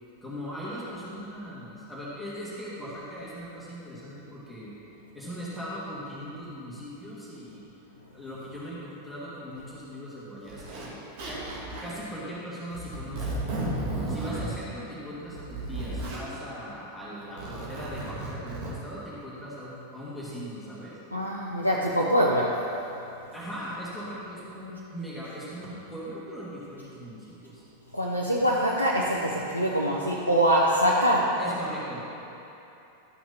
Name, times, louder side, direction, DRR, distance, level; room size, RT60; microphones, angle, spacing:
voice 1, 0.2-4.7 5.1-7.6 8.1-11.0 11.2-13.7 14.1-21.0 23.3-27.6 31.4-32.1, equal, 5° left, -9 dB, 2.2 m, -39 dB
Zipper (clothing), 9.6-9.7 10.5-10.9 11.2-12.0 12.7-14.4 15.1-16.2 17.2-18.7, right 1 dB, 50° right, 1.8 m, -34 dB
voice 2, 21.1-22.6 27.9-31.4, equal, 90° left, -4 dB, 0.7 m, -24 dB
12.5 x 5.9 x 4.2 m, 3.0 s
figure-of-eight pair, 90°, 0 cm